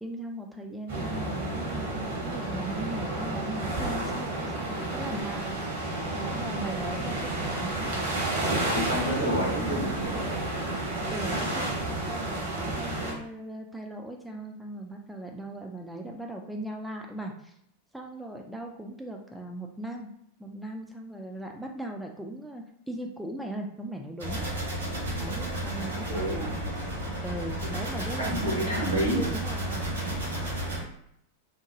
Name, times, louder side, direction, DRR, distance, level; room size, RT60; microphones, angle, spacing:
voice 1, 0.0-5.5 6.3-8.0 11.1-17.5 17.9-20.1 20.4-24.5 25.2-26.9 27.2-30.3, right 1 dB, ahead, 1 dB, 0.3 m, -38 dB
sound 1, 0.9-13.1, right 2 dB, 55° right, 0.9 m, -31 dB
voice 2, 8.7-10.4 26.1-26.5 28.2-29.3, right 1 dB, 85° right, -5 dB, 1.3 m, -29 dB
sound 2, 24.2-30.8, right 1 dB, 70° right, 1.2 m, -32 dB
2.8 x 2.2 x 2.5 m, 0.72 s
figure-of-eight pair, 90°, 0 cm